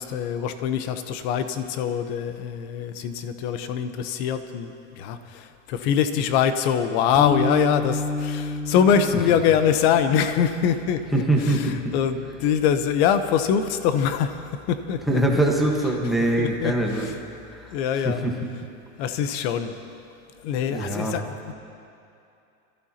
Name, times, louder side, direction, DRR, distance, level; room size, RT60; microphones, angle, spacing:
voice 1, 0.0-14.4 14.7-15.2 16.4-17.2 17.7-18.2 19.0-19.8 20.4-21.5, left 8 dB, 50° left, 9 dB, 1.0 m, -24 dB
sound 1, 7.1-13.6, left 3 dB, 75° left, 4.3 m, -31 dB
voice 2, 11.1-11.9 15.1-17.1 17.5-17.7 18.0-18.4 20.7-21.1, right 1 dB, ahead, -1 dB, 1.3 m, -23 dB
25.5 x 14.5 x 2.9 m, 2.6 s
supercardioid pair, 150°, 41 cm